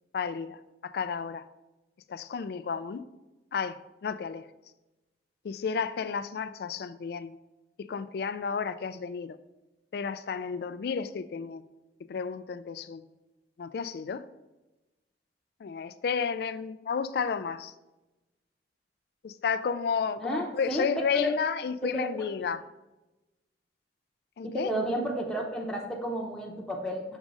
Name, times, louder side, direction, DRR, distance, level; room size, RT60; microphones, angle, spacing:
voice 1, 0.1-1.4 2.1-3.0 3.5-4.5 5.4-7.4 7.8-9.4 9.9-11.6 12.1-13.0 13.6-14.2 15.6-17.7 19.2-22.6 24.4-24.7, left 6 dB, 60° left, 14 dB, 0.3 m, -32 dB
voice 2, 20.2-20.9 21.1-21.3 21.8-22.1 22.4-22.5 24.4-27.0, equal, 5° left, -1 dB, 0.7 m, -32 dB
6.2 x 3.6 x 5.3 m, 1.0 s
head